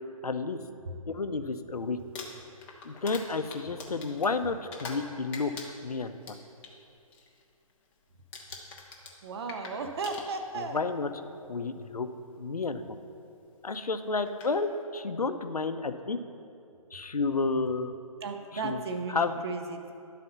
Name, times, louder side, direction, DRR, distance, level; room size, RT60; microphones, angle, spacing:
voice 1, 0.2-0.6 1.1-2.0 2.8-5.5 5.8-6.4 10.5-11.1 11.5-12.1 12.4-13.0 13.6-16.2 16.9-17.9 18.6-18.8 19.1-19.4, left 4 dB, 85° left, 9 dB, 0.6 m, -31 dB
Crumpling crinkling, 2.0-5.1 5.3-6.7 7.1-7.4 7.7-8.0 8.3-10.7 11.7-11.8 13.7-13.8 14.3-14.5, left 4 dB, 10° left, 0.4 m, -44 dB
voice 2, 9.2-10.8 18.2-19.9, right 4 dB, 45° right, 5 dB, 0.6 m, -35 dB
10.5 x 4.1 x 5.5 m, 2.5 s
figure-of-eight pair, 135°, 19 cm